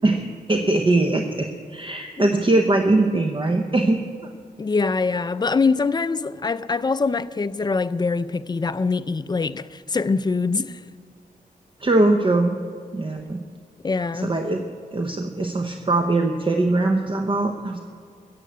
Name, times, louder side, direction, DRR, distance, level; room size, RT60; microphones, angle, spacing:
voice 1, 0.0-4.0 11.8-12.6 12.9-13.4 14.2-14.6 14.9-17.8, right 2 dB, 35° right, 0.8 m, -21 dB
voice 2, 4.6-10.8 13.8-14.4, left 4 dB, 25° left, 0.4 m, -24 dB
15.5 x 7.7 x 8.0 m
wide cardioid pair, 145°, 16 cm